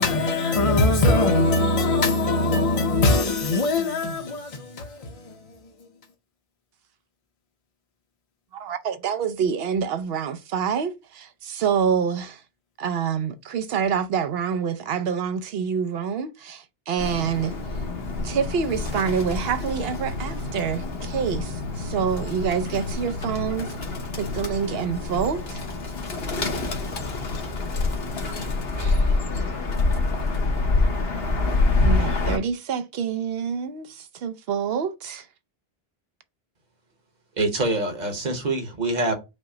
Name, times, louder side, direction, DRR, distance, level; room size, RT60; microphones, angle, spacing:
voice 1, 0.0-5.6, left 2 dB, 40° left, 0.7 m, -22 dB
voice 2, 8.5-12.4 12.8-17.5 18.2-23.8 24.1-25.6 28.8-29.1 31.8-35.3, right 7 dB, 75° right, 0.8 m, -27 dB
Bird, 17.0-32.4, left 3 dB, 75° left, 1.2 m, -26 dB
voice 3, 37.4-39.1, right 2 dB, 45° right, 1.0 m, -25 dB
5.3 x 2.0 x 4.8 m
omnidirectional pair, 1.0 m